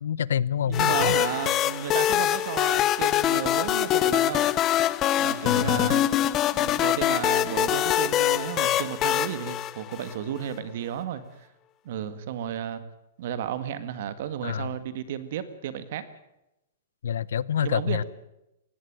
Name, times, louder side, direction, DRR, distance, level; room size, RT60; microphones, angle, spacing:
voice 1, 0.0-1.1 5.4-5.9 14.4-14.7 17.0-18.0, left 8 dB, 85° left, 0.8 m, -27 dB
sound 1, 0.7-10.4, left 12 dB, 20° left, 0.6 m, -24 dB
voice 2, 0.7-4.5 5.2-6.0 6.5-11.5 11.9-12.8 13.2-16.1 17.6-18.0, right 9 dB, 50° right, 1.8 m, -33 dB
19.0 x 15.5 x 8.9 m
hypercardioid pair, 175°, 0 cm